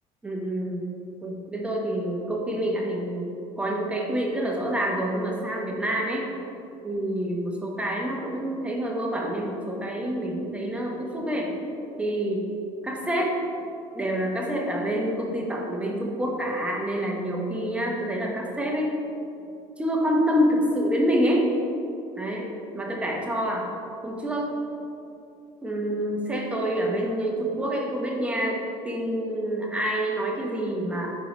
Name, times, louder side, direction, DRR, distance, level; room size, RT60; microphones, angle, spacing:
voice 1, 0.2-0.9 1.2-3.3 3.6-6.3 6.8-11.5 12.0-12.5 12.8-13.4 13.9-18.9 19.8-21.5 22.2-22.5 22.7-23.7 24.0-24.5 25.6-28.6 28.8-31.2, equal, 10° right, -1 dB, 0.9 m, -27 dB
4.6 x 4.6 x 5.2 m, 2.7 s
cardioid pair, 120°, 14 cm